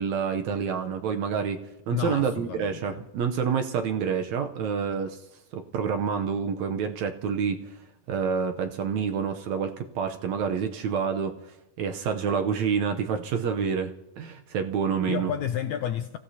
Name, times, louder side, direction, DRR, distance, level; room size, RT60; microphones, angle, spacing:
voice 1, 0.0-1.6 1.9-5.2 5.5-7.7 8.1-11.3 11.8-15.3, right 6 dB, 70° right, 1.8 m, -28 dB
voice 2, 1.9-3.1 15.0-16.2, left 10 dB, 80° left, 1.6 m, -31 dB
30.0 x 16.0 x 2.8 m
omnidirectional pair, 3.9 m